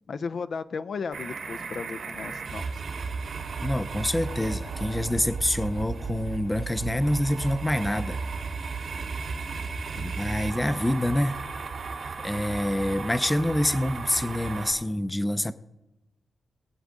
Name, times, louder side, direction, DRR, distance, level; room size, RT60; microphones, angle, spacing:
voice 1, 0.1-2.8 9.9-10.1, left 5 dB, 65° left, 0.4 m, -35 dB
sound 1, 1.1-14.7, right 4 dB, 70° right, 3.1 m, -34 dB
voice 2, 3.6-8.2 10.0-11.3 12.2-15.5, left 1 dB, 15° left, 0.6 m, -26 dB
21.5 x 8.6 x 3.7 m
cardioid pair, 75°, 0 cm